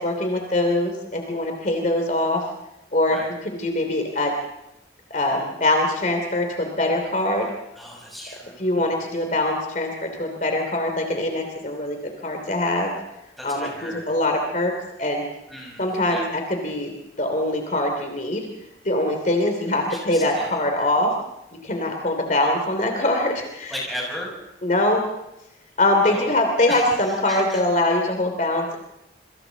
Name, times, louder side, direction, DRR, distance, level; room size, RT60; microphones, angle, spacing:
voice 1, 0.0-2.4 2.9-3.2 3.4-4.3 5.1-7.5 8.6-12.0 12.2-12.9 13.4-14.7 15.0-15.2 15.8-18.4 18.8-21.1 21.6-23.7 24.6-25.1 25.8-28.8, left 1 dB, 45° left, 3 dB, 3.0 m, -23 dB
voice 2, 7.7-9.1 13.4-14.1 15.5-16.2 19.7-20.6 23.7-24.4 26.0-26.3 26.7-27.6, equal, ahead, -3 dB, 7.1 m, -36 dB
28.0 x 24.5 x 4.0 m, 0.86 s
head